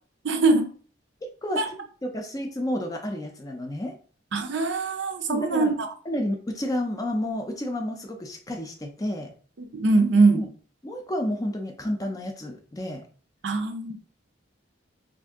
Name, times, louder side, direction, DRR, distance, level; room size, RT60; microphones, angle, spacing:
voice 1, 0.2-0.7 1.6-1.7 4.3-5.9 9.6-10.4 13.4-13.9, right 3 dB, 65° right, 6 dB, 0.5 m, -22 dB
voice 2, 2.0-3.9 5.3-5.7 6.1-9.3 10.3-10.5 10.8-13.0, left 1 dB, 20° left, 3 dB, 0.4 m, -30 dB
2.7 x 2.5 x 3.5 m, 0.42 s
head